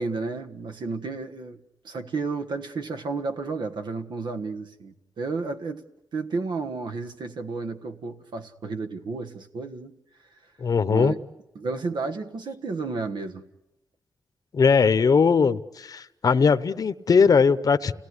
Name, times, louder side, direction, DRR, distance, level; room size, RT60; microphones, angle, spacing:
voice 1, 0.0-1.6 1.8-5.8 6.1-9.9 10.9-11.2 11.5-13.4, right 4 dB, 85° right, 7 dB, 1.5 m, -32 dB
voice 2, 10.6-11.1 14.5-17.9, left 5 dB, 55° left, 11 dB, 0.9 m, -20 dB
30.0 x 18.0 x 9.8 m, 0.96 s
wide cardioid pair, 115°, 8 cm